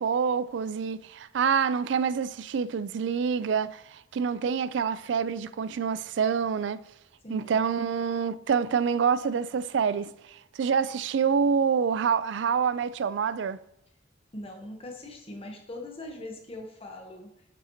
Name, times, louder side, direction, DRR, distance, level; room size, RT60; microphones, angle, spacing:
voice 1, 0.0-6.8 7.3-13.6, right 6 dB, 75° right, 0.3 m, -27 dB
voice 2, 7.2-7.6 14.3-17.4, left 1 dB, 30° left, 0.9 m, -41 dB
10.0 x 5.4 x 2.8 m
head